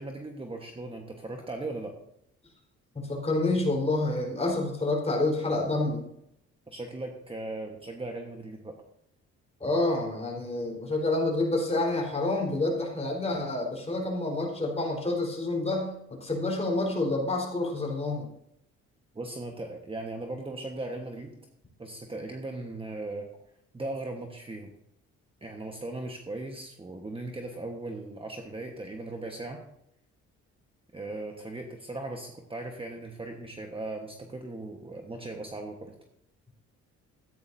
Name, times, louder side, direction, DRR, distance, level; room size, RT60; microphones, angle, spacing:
voice 1, 0.0-1.9 6.7-8.7 19.1-21.4 21.8-23.3 23.7-24.7 25.4-29.6 30.9-35.9, right 2 dB, 20° right, 2 dB, 1.3 m, -38 dB
voice 2, 2.9-6.0 9.6-15.9 16.2-18.3, left 2 dB, 20° left, -1 dB, 4.1 m, -28 dB
14.0 x 9.4 x 2.7 m, 0.76 s
cardioid pair, 90°, 30 cm